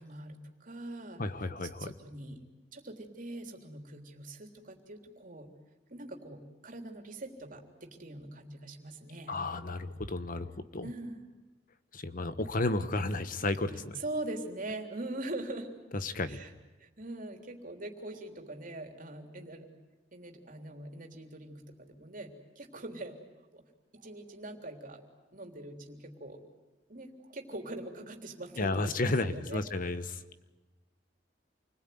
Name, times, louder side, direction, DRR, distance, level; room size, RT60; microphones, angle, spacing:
voice 1, 0.0-2.4 2.7-5.5 5.9-9.4 10.2-10.4 10.8-11.2 13.9-15.7 16.2-16.5 16.8-19.7 20.1-23.2 23.5-23.6 23.9-25.0 25.3-26.4 26.9-29.6, right 2 dB, 50° right, 3 dB, 3.5 m, -43 dB
voice 2, 1.2-1.9 9.3-10.9 11.9-13.9 16.0-16.4 28.6-30.0, left 2 dB, 50° left, 11 dB, 1.4 m, -32 dB
29.0 x 20.5 x 9.4 m, 1.2 s
head